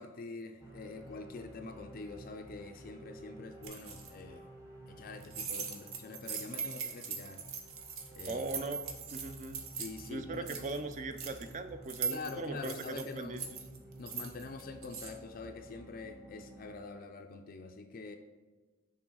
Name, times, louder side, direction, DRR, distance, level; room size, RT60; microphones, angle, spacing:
voice 1, 0.0-4.5 4.9-7.4 8.1-8.4 9.8-10.5 12.1-13.5 14.0-18.2, left 3 dB, 40° left, 5 dB, 0.4 m, -45 dB
sound 1, 0.6-16.8, right 1 dB, 15° right, 1.0 m, -53 dB
sound 2, 3.6-4.1 5.2-10.1 10.3-11.5 11.9-15.1, right 6 dB, 70° right, 0.9 m, -41 dB
voice 2, 8.3-8.8 9.1-9.6 10.1-13.4, right 2 dB, 35° right, 9 dB, 0.4 m, -39 dB
6.1 x 3.8 x 6.2 m, 1.3 s
head